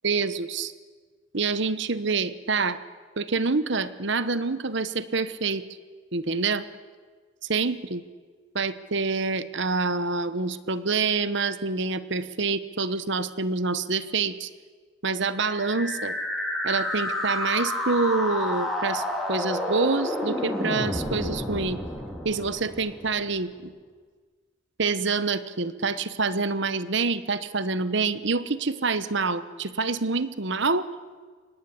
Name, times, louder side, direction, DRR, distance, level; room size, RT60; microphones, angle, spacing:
voice 1, 0.0-0.7 1.3-2.8 3.2-5.6 6.1-6.7 7.5-8.0 8.5-14.5 15.0-16.2 16.6-19.0 19.3-21.8 22.2-23.7 24.8-30.9, right 4 dB, 60° right, 14 dB, 1.1 m, -26 dB
sound 1, 15.3-23.3, left 1 dB, ahead, 3.8 m, -30 dB
24.5 x 19.5 x 8.6 m, 1.5 s
head